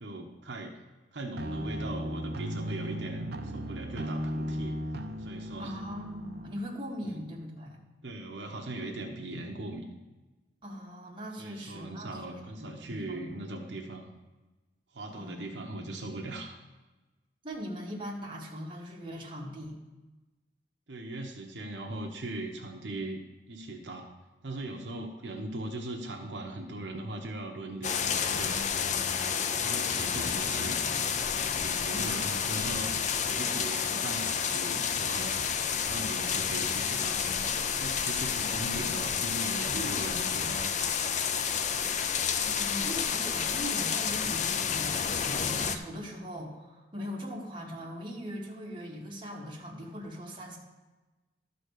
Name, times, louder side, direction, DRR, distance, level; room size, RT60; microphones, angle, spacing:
voice 1, 0.0-0.8 1.1-4.8 5.2-5.8 7.0-7.2 8.0-10.0 11.4-14.1 14.9-16.5 20.9-23.2 23.5-24.1 24.4-28.7 29.6-30.8 31.5-33.0 33.2-35.3 35.7-40.7 41.2-41.5, right 2 dB, 80° right, 1 dB, 1.0 m, -39 dB
sound 1, 1.4-6.5, equal, 65° right, 0.7 m, -36 dB
voice 2, 5.6-7.8 10.6-13.3 15.1-15.5 17.4-19.8 30.0-30.1 31.9-32.4 38.2-38.5 39.7-40.6 42.4-50.6, equal, 30° right, -3 dB, 1.8 m, -40 dB
sound 2, 27.8-45.8, left 7 dB, 40° left, 0.5 m, -30 dB
12.0 x 4.2 x 6.5 m, 1.1 s
head